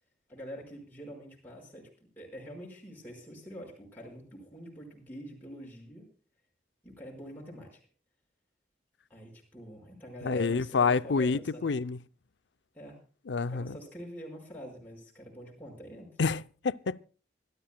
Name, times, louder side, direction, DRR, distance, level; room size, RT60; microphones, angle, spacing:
voice 1, 0.3-1.9 2.2-6.1 6.8-7.8 9.1-11.7 12.7-13.0 13.5-16.1, equal, 10° left, 5.3 m, -45 dB
voice 2, 10.2-12.0 13.3-13.8 16.2-17.0, left 4 dB, 90° left, 0.6 m, -28 dB
25.5 x 12.0 x 2.3 m
head